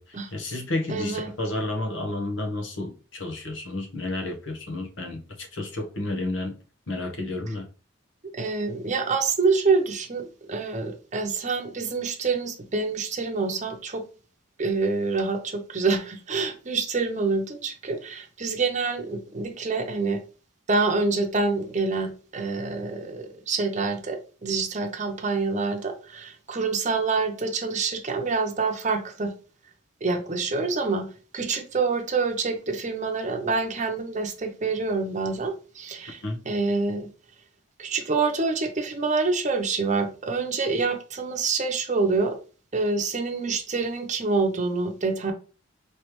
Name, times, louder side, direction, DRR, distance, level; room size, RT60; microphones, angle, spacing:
voice 1, 0.0-6.5 6.9-7.7 36.2-36.4, left 2 dB, 65° left, 1.0 m, -31 dB
voice 2, 0.9-1.3 8.3-14.0 14.6-20.2 20.7-29.3 30.0-31.1 31.3-37.1 37.8-42.4 42.7-45.3, right 4 dB, 35° right, 0.7 m, -26 dB
4.8 x 3.2 x 3.1 m
head